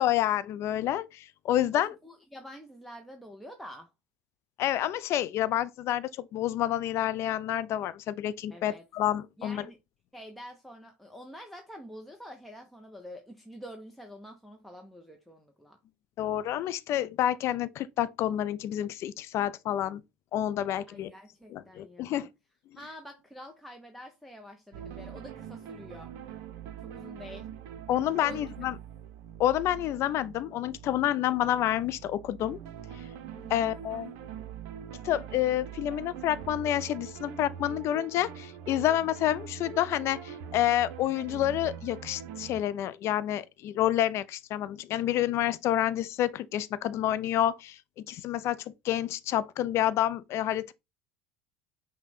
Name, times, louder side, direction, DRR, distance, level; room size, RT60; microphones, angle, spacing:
voice 1, 0.0-1.9 4.6-9.6 16.2-20.0 20.3-21.1 21.5-22.3 27.9-28.8 29.4-32.6 33.5-34.1 35.0-47.8 48.1-50.7, left 12 dB, 45° left, 0.4 m, -28 dB
voice 2, 1.7-3.9 8.5-8.9 9.4-9.8 10.1-15.8 20.9-22.3 22.7-26.1 26.8-27.5 28.2-28.4 33.3-33.7, equal, ahead, 0.6 m, -47 dB
sound 1, 24.7-42.6, right 9 dB, 55° right, 0.6 m, -43 dB
5.6 x 2.2 x 4.1 m
figure-of-eight pair, 70°, 6 cm